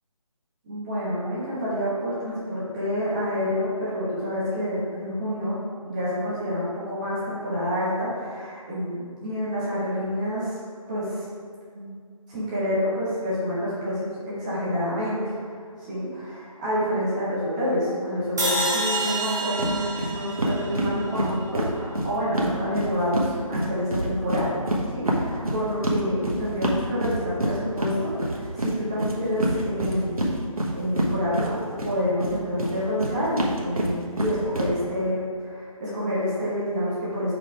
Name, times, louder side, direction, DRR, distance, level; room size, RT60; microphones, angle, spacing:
voice 1, 0.6-10.6 10.9-11.2 11.7-11.9 12.3-15.3 15.8-19.8 20.1-24.6 24.9-30.4 30.7-31.5 31.8-37.3, equal, 15° right, -10 dB, 1.0 m, -28 dB
sound 1, 18.4-21.6, right 2 dB, 30° right, 1.3 m, -28 dB
sound 2, 19.6-19.7 20.0-20.1 20.4-23.3 23.5-31.9 32.2-34.7, right 1 dB, 80° right, 1.2 m, -26 dB
4.7 x 4.5 x 4.7 m, 2.1 s
figure-of-eight pair, 165°, 18 cm